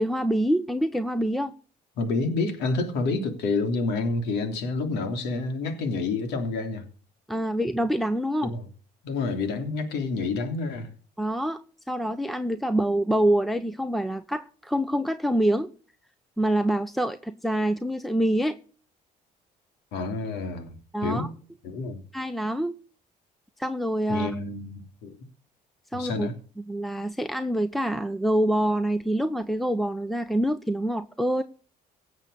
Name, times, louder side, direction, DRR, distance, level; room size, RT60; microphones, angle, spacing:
voice 1, 0.0-1.5 7.3-8.5 11.2-11.6 11.9-15.7 16.4-18.6 20.9-21.3 22.1-22.7 23.6-24.3 25.9-26.3 26.7-31.4, right 1 dB, ahead, 0.8 m, -26 dB
voice 2, 2.0-6.8 8.4-8.7 9.0-10.9 19.9-20.8 21.0-21.3 21.6-22.0 24.1-25.2 25.9-26.3, left 3 dB, 90° left, 3.2 m, -28 dB
17.5 x 7.4 x 6.8 m
cardioid pair, 110°, 17 cm